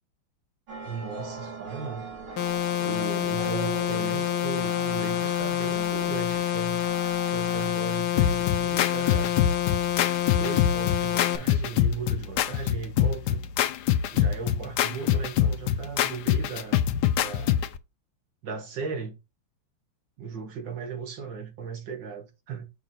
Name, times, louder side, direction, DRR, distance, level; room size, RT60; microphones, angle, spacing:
sound 1, 0.7-7.7, right 3 dB, 85° right, 2.6 m, -40 dB
voice 1, 0.8-2.1 2.8-6.9 7.3-9.4 10.4-13.4 14.1-16.8 17.2-17.6 18.4-19.2 20.2-22.7, right 5 dB, 65° right, 1.9 m, -37 dB
sound 2, 2.4-11.4, left 12 dB, 90° left, 1.5 m, -27 dB
sound 3, 8.2-17.8, left 10 dB, 75° left, 1.0 m, -25 dB
6.0 x 6.0 x 2.6 m
omnidirectional pair, 2.2 m